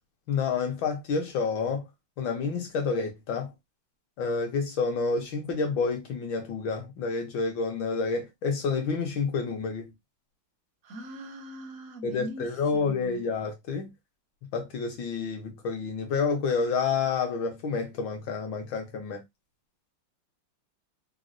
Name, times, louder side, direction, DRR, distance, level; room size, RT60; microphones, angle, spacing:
voice 1, 0.3-1.9 2.2-3.5 4.2-9.9 12.0-13.9 14.5-19.2, left 5 dB, 65° left, 1.5 m, -29 dB
voice 2, 10.8-13.2, left 1 dB, 65° right, 0.8 m, -41 dB
4.0 x 2.2 x 2.5 m
omnidirectional pair, 2.4 m